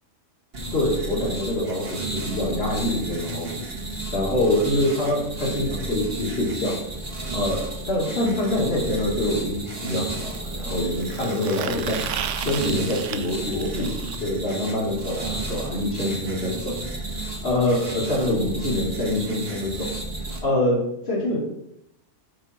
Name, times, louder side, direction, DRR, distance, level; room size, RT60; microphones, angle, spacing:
sound 1, 0.5-20.4, right 2 dB, 45° right, 1.7 m, -32 dB
voice 1, 0.7-3.5 4.1-6.8 7.3-13.9 14.2-16.8 17.2-19.9 20.4-21.4, left 1 dB, 45° left, -3 dB, 2.4 m, -25 dB
sound 2, 10.3-14.2 16.1-16.2 16.5-16.6 16.8-17.0 17.9-18.0, right 9 dB, 70° right, 0.8 m, -34 dB
8.1 x 5.5 x 4.3 m, 0.80 s
omnidirectional pair, 1.5 m